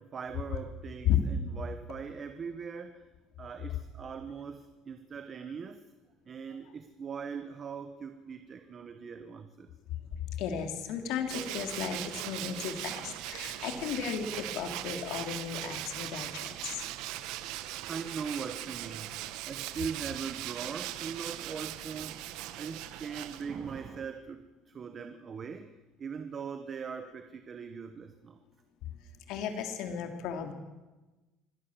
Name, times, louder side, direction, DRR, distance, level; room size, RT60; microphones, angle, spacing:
voice 1, 0.0-3.0 3.4-5.8 6.3-9.7 17.5-22.3 22.6-25.7 26.0-28.4, right 6 dB, 25° right, 9 dB, 1.0 m, -41 dB
voice 2, 10.3-16.8 29.3-30.5, left 8 dB, 65° left, 5 dB, 3.3 m, -34 dB
Tools, 11.3-23.8, right 14 dB, 70° right, 1.2 m, -40 dB
25.0 x 17.0 x 7.4 m, 1.2 s
cardioid pair, 160°, 0 cm